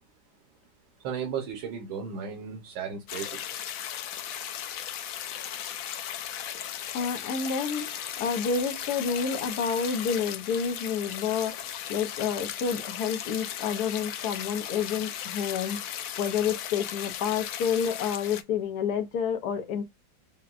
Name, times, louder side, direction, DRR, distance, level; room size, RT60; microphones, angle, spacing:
voice 1, 1.0-3.4, right 7 dB, 90° right, 1.7 m, -35 dB
sound 1, 3.1-18.4, left 10 dB, 80° left, 0.7 m, -36 dB
voice 2, 6.9-15.9 16.2-19.8, left 6 dB, 65° left, 1.2 m, -29 dB
5.8 x 2.2 x 2.4 m
omnidirectional pair, 2.0 m